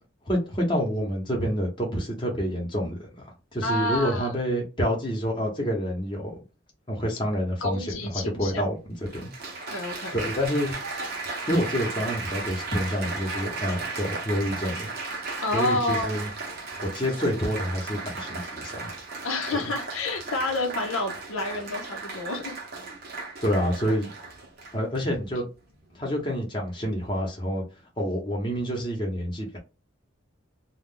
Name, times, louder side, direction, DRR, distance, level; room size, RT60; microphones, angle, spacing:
voice 1, 0.3-3.0 3.5-6.3 6.9-9.3 10.1-10.7 11.5-14.9 15.5-16.3 16.8-18.9 19.5-19.7 23.4-24.1 24.7-25.5 25.9-27.6 28.0-29.6, equal, 25° left, 0.9 m, -28 dB
voice 2, 3.6-4.3 7.6-8.6 9.7-10.2 15.4-16.1 19.2-22.5, left 2 dB, 75° left, 0.7 m, -29 dB
Applause, 8.3-8.4 9.1-25.0 25.7-26.0, right 3 dB, 45° right, 0.7 m, -35 dB
2.5 x 2.2 x 3.7 m
head